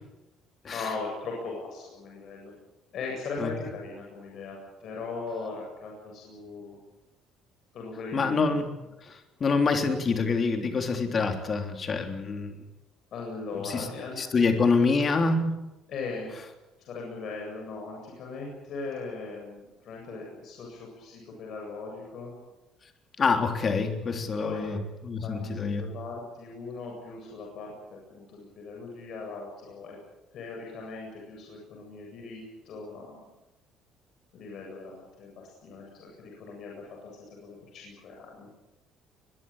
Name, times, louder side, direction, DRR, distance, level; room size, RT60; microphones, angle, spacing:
voice 1, 0.7-2.5 2.9-6.8 7.7-8.6 13.1-14.6 15.9-16.3 16.9-22.3 24.4-24.8 25.2-30.0 30.3-33.3 34.3-38.5, left 3 dB, 50° left, -1 dB, 8.0 m, -39 dB
voice 2, 8.1-8.7 9.0-12.6 13.5-13.9 14.2-15.6 23.2-25.9, left 4 dB, 30° left, 5 dB, 3.5 m, -26 dB
23.0 x 22.0 x 9.1 m, 0.98 s
cardioid pair, 145°, 0 cm